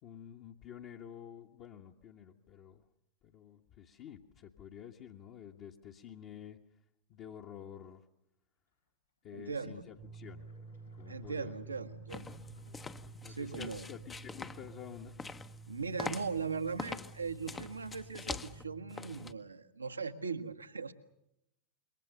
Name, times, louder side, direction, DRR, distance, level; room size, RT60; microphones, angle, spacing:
voice 1, 0.0-2.8 3.2-6.6 7.1-8.0 9.2-10.4 10.9-11.8 12.4-12.5 13.2-15.1, left 9 dB, 40° left, -1 dB, 1.7 m, -50 dB
voice 2, 9.3-9.8 11.0-12.3 13.3-13.9 15.7-20.9, right 5 dB, 80° right, 8 dB, 1.6 m, -39 dB
sound 1, 10.0-19.4, right 4 dB, 25° right, 1.1 m, -52 dB
sound 2, 10.1-14.3, equal, 85° left, 5.9 m, -61 dB
sound 3, 12.1-19.3, left 4 dB, 15° left, 1.0 m, -45 dB
27.5 x 23.0 x 6.9 m, 0.84 s
figure-of-eight pair, 90°, 0 cm